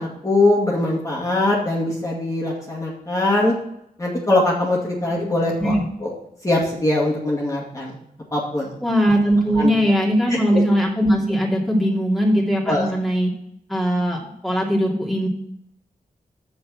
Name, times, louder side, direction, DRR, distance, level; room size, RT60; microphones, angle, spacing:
voice 1, 0.0-3.6 4.0-5.7 6.0-6.1 6.4-8.0 8.3-8.8 9.5-9.7 10.3-10.6 12.7-12.9, left 2 dB, 20° left, -5 dB, 2.2 m, -21 dB
voice 2, 8.8-13.3 13.7-15.3, equal, ahead, -3 dB, 2.6 m, -20 dB
6.9 x 6.4 x 6.2 m, 0.78 s
wide cardioid pair, 75°, 16 cm